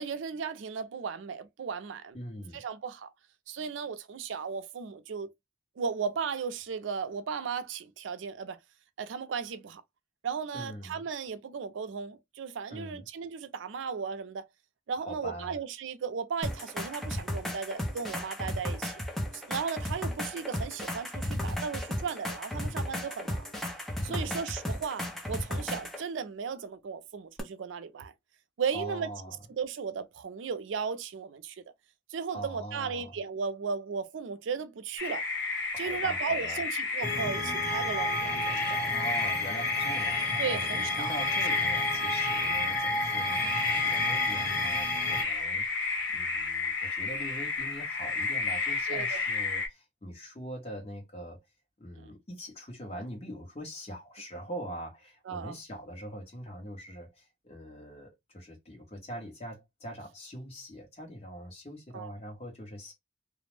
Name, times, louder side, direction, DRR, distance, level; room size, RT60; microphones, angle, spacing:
voice 1, 0.0-2.2 2.5-3.1 3.5-5.3 5.8-8.6 9.0-9.8 10.2-14.4 14.9-18.9 19.3-23.5 24.0-28.1 28.6-29.1 29.6-31.6 32.1-35.2 35.8-39.0 40.4-41.1 42.5-42.6 48.9-49.2 52.0-52.1 55.3-55.6 61.9-62.1, right 6 dB, 85° right, 0.4 m, -35 dB
voice 2, 2.1-2.6 10.5-11.1 12.7-13.1 15.0-15.5 22.5-22.9 24.1-24.4 28.7-29.4 32.3-33.2 35.7-36.6 38.9-51.4 51.8-62.9, equal, 30° left, 1.0 m, -42 dB
sound 1, 16.4-26.0 27.4-27.5, left 1 dB, ahead, 0.4 m, -35 dB
tree frog concert, 35.0-49.7, left 4 dB, 80° left, 0.9 m, -31 dB
sound 2, 37.0-45.2, equal, 50° left, 1.2 m, -34 dB
2.4 x 2.0 x 3.1 m
head